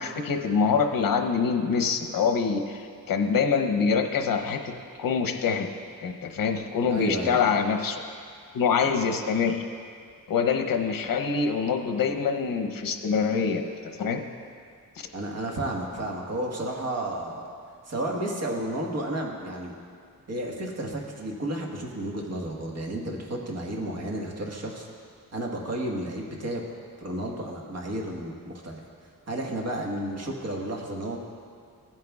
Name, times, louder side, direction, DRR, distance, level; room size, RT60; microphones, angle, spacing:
voice 1, 0.0-4.7 5.0-5.7 6.0-8.0 8.5-9.6 10.3-14.2, left 5 dB, 75° left, 5 dB, 0.8 m, -25 dB
voice 2, 6.9-7.4 15.1-17.4 17.9-19.7 20.3-24.9 25.3-26.6 27.0-28.8 29.3-31.2, right 1 dB, 50° right, -1 dB, 1.4 m, -32 dB
16.0 x 9.1 x 2.4 m, 2.2 s
wide cardioid pair, 125°, 34 cm